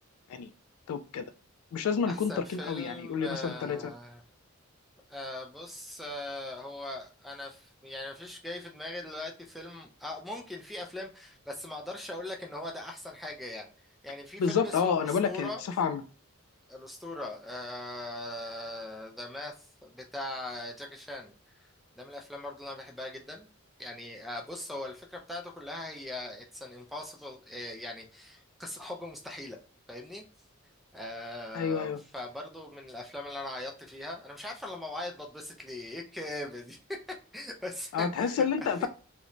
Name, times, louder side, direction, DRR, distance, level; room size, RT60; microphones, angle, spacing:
voice 1, 0.9-1.2 1.7-3.9 14.4-15.5 15.8-16.0 31.5-32.0 37.9-38.9, left 6 dB, 85° left, 14 dB, 0.3 m, -29 dB
voice 2, 2.1-4.2 5.1-13.7 14.0-15.6 16.7-21.3 22.0-23.5 23.8-29.6 29.9-30.2 30.9-37.0 37.3-38.4, left 1 dB, ahead, 2 dB, 0.3 m, -40 dB
2.5 x 2.1 x 2.9 m, 0.38 s
head